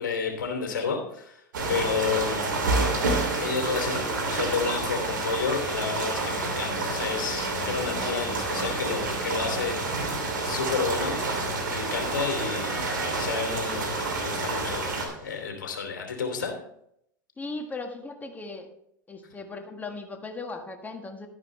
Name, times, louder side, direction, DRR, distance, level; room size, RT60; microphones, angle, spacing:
voice 1, 0.0-1.4 1.7-2.4 3.3-11.2 11.6-12.9 13.1-16.6, left 5 dB, 75° left, 3 dB, 3.0 m, -31 dB
sound 1, 1.5-15.1, right 2 dB, 80° right, 2.8 m, -28 dB
sound 2, 10.4-15.4, right 4 dB, 55° right, 4.1 m, -49 dB
voice 2, 17.4-18.7 19.1-21.3, left 3 dB, 15° left, 5 dB, 1.7 m, -37 dB
11.5 x 10.5 x 3.3 m, 0.73 s
hypercardioid pair, 95°, 10 cm